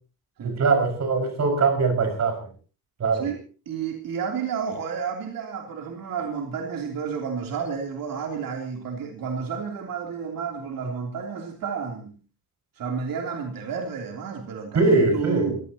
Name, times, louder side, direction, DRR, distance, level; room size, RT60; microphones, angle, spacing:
voice 1, 0.4-2.4 3.0-3.3 14.7-15.6, right 3 dB, 50° right, 5 dB, 5.7 m, -21 dB
voice 2, 3.2-12.2 12.8-15.6, right 6 dB, 75° right, 1 dB, 3.3 m, -31 dB
23.5 x 17.0 x 2.9 m, 0.38 s
wide cardioid pair, 170°, 34 cm